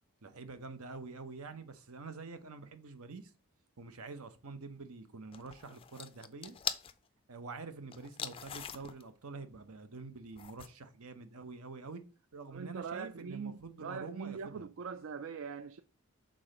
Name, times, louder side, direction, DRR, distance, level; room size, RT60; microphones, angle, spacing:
voice 1, 0.2-3.3 3.8-6.6 7.3-12.0 12.3-14.7, right 4 dB, 80° right, 0.8 m, -47 dB
sound 1, 5.3-6.9 7.9-9.1 10.4-10.7, left 8 dB, 25° left, 0.3 m, -41 dB
voice 2, 12.5-15.8, right 6 dB, 65° right, 0.3 m, -42 dB
6.2 x 3.8 x 5.0 m
head